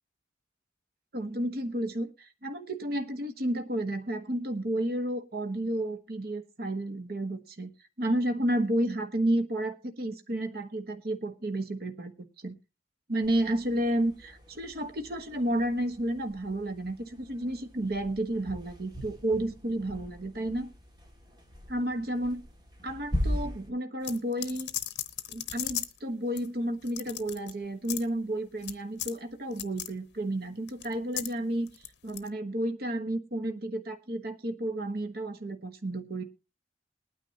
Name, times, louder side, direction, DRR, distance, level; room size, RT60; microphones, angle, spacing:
voice 1, 1.1-7.7 8.0-12.1 12.4-12.5 13.1-20.7 21.7-22.4 22.8-24.7 25.3-31.7 32.0-36.2, right 1 dB, 55° right, 7 dB, 1.2 m, -31 dB
sound 1, 13.2-23.7, equal, 25° right, 2.2 m, -40 dB
sound 2, 24.0-26.0 26.4-26.5 26.8-27.5 27.8-28.1 28.6-28.7 29.0-29.2 29.5-29.9 30.7-31.3 31.7-32.3, left 13 dB, 65° left, 0.9 m, -36 dB
21.0 x 9.4 x 2.8 m, 0.28 s
head